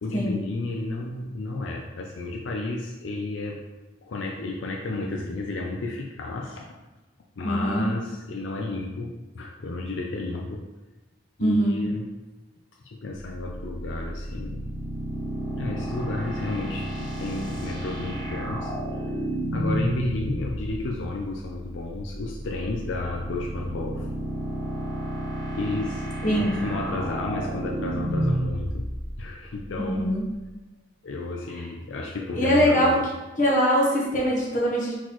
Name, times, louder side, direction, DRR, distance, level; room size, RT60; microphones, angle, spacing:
voice 1, 0.0-3.6 4.0-6.6 7.4-10.6 11.4-12.1 12.8-14.7 15.6-24.1 25.5-28.9 29.2-30.1 31.0-33.0, left 2 dB, 80° left, -1 dB, 0.5 m, -32 dB
voice 2, 7.4-7.8 11.4-11.8 26.2-26.5 29.8-30.2 31.5-31.6 32.3-32.9 33.4-34.9, equal, 40° left, -4 dB, 1.1 m, -22 dB
sound 1, 13.2-30.3, right 1 dB, 25° left, 1.5 m, -31 dB
4.2 x 4.1 x 3.0 m, 1.1 s
head